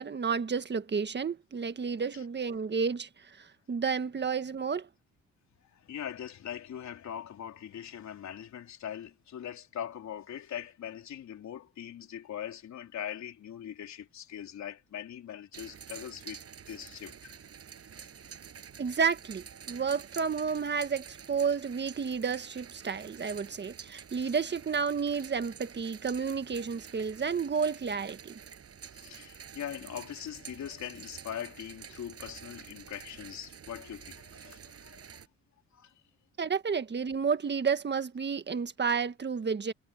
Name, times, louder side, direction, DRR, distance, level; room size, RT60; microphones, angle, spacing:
voice 1, 0.0-4.9 18.8-28.3 36.4-39.7, right 6 dB, 35° right, 1.6 m, -31 dB
voice 2, 5.6-16.4 16.7-17.4 18.0-18.1 28.9-35.0 35.7-35.9, left 9 dB, 65° left, 3.7 m, -41 dB
sound 1, 15.5-35.3, right 7 dB, 50° right, 7.4 m, -49 dB
cardioid pair, 90°, 30 cm